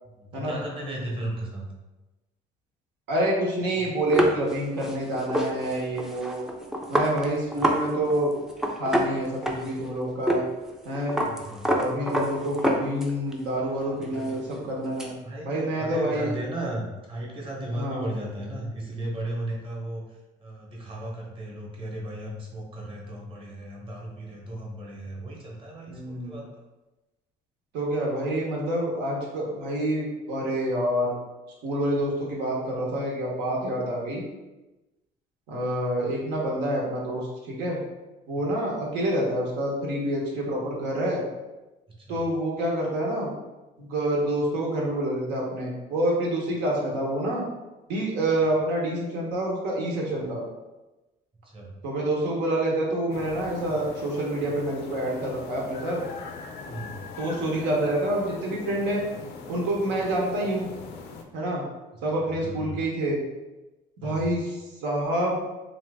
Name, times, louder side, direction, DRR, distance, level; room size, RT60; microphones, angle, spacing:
voice 1, 0.1-1.6 7.5-7.7 11.2-11.7 15.1-26.5 42.0-42.2 51.4-51.7 56.7-57.0 62.2-62.7 64.0-64.3, right 1 dB, 30° right, -2 dB, 0.9 m, -35 dB
voice 2, 3.1-6.4 6.9-8.3 8.8-10.4 10.8-11.2 11.7-15.1 15.4-16.3 17.7-18.1 25.9-26.4 27.7-31.1 31.6-34.2 35.5-37.8 38.3-41.2 42.1-43.3 43.8-47.4 47.9-50.4 51.8-56.0 57.2-59.0 59.5-60.7 61.3-61.6 62.0-63.2 64.0-65.4, right 1 dB, 90° right, -3 dB, 1.0 m, -27 dB
sound 1, 4.1-7.8 8.1-8.2 8.5-9.9 10.3-10.4 10.7-13.3 13.7-15.1, equal, 5° right, 0.4 m, -27 dB
sound 2, 53.1-61.2, left 4 dB, 70° left, 0.5 m, -41 dB
2.8 x 2.5 x 3.4 m, 1.1 s
cardioid pair, 110°, 17 cm